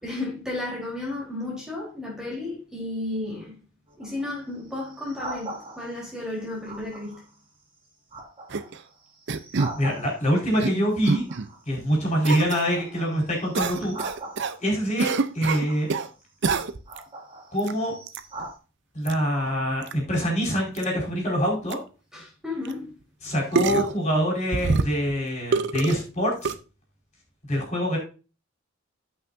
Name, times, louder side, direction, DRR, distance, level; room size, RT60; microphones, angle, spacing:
voice 1, 0.0-3.5 4.0-7.2 13.8-13.9 19.4-19.5 22.1-22.9, left 2 dB, 5° right, 3.7 m, -33 dB
sound 1, 3.9-6.1 6.6-7.4 7.8-10.5 11.0-12.1 12.4-14.8 15.4-16.1 16.7-18.6, right 2 dB, 25° right, 2.5 m, -41 dB
sound 2, 8.5-8.8 9.3-9.8 10.3-10.7 11.0-11.5 12.2-12.6 13.5-14.6 15.0-16.1 16.4-17.0 17.6-17.7 18.1-18.2 19.1-19.2 19.8-19.9 20.2-20.3 20.8-20.9 21.4-21.5 21.7-21.8 22.6-22.7 23.5-24.0 24.5-25.1 25.5-26.0 26.4-26.5, right 4 dB, 60° right, 0.6 m, -26 dB
voice 2, 9.8-11.2 11.7-14.0 14.6-15.9 17.5-18.0 18.9-21.8 23.2-26.5 27.5-28.0, equal, 35° left, 4.6 m, -25 dB
14.0 x 5.9 x 2.6 m
head